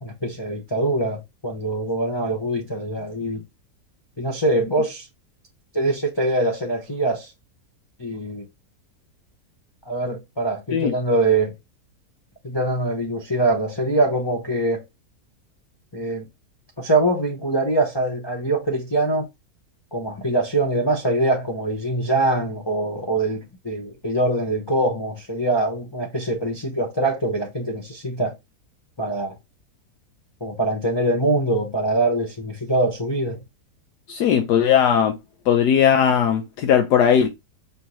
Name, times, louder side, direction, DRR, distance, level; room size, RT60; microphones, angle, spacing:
voice 1, 0.0-3.4 4.2-5.1 5.7-7.3 8.0-8.5 9.9-11.5 12.4-14.8 15.9-16.2 16.8-19.3 19.9-28.3 29.0-29.3 30.4-33.4, right 2 dB, 30° left, 0.4 m, -23 dB
voice 2, 34.1-35.2 35.5-37.3, left 8 dB, 75° left, 1.2 m, -18 dB
5.5 x 2.7 x 3.0 m
omnidirectional pair, 1.8 m